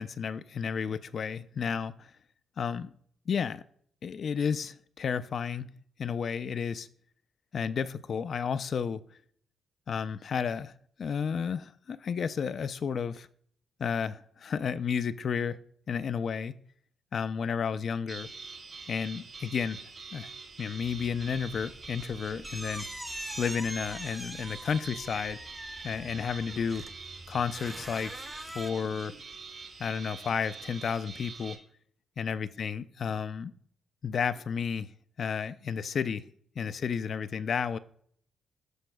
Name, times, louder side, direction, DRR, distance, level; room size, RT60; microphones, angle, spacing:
voice 1, 0.0-2.1 2.6-2.9 3.3-3.6 4.0-5.7 6.0-6.9 7.5-9.0 9.9-10.7 11.0-13.3 13.8-15.6 15.9-16.6 17.1-18.3 18.9-19.8 20.1-20.3 20.6-22.9 23.4-25.5 25.8-26.8 27.3-28.1 28.5-29.1 29.8-31.6 32.2-33.5 34.0-34.9 35.2-36.2 36.6-37.8, left 6 dB, 60° left, 0.4 m, -32 dB
sound 1, 18.1-31.6, right 4 dB, 55° right, 2.0 m, -45 dB
sound 2, 20.8-28.7, equal, 5° right, 0.7 m, -44 dB
13.5 x 4.6 x 2.3 m
supercardioid pair, 55°, 0 cm